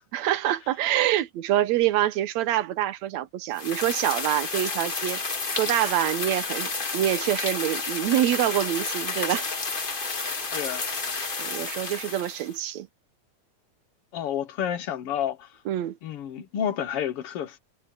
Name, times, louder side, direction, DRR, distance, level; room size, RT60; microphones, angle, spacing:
voice 1, 0.1-5.2 5.5-9.5 11.4-12.9 15.7-16.0, right 13 dB, 75° right, 2.1 m, -26 dB
sound 1, 3.6-12.6, left 4 dB, 30° left, 1.0 m, -31 dB
voice 2, 10.5-11.0 11.2-11.6 14.1-15.5 16.0-17.6, left 9 dB, 55° left, 2.1 m, -30 dB
omnidirectional pair, 3.4 m